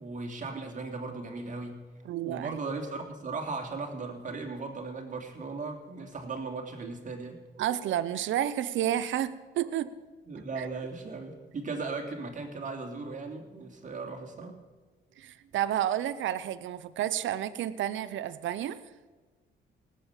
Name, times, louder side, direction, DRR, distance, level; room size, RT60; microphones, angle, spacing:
voice 1, 0.0-1.8 2.2-7.4 10.3-14.6, right 3 dB, 40° right, 2 dB, 2.9 m, -37 dB
voice 2, 2.0-2.6 7.6-9.9 10.6-10.7 15.2-18.8, right 11 dB, 75° right, 13 dB, 0.8 m, -30 dB
18.5 x 7.7 x 8.2 m, 1.3 s
cardioid pair, 90°, 20 cm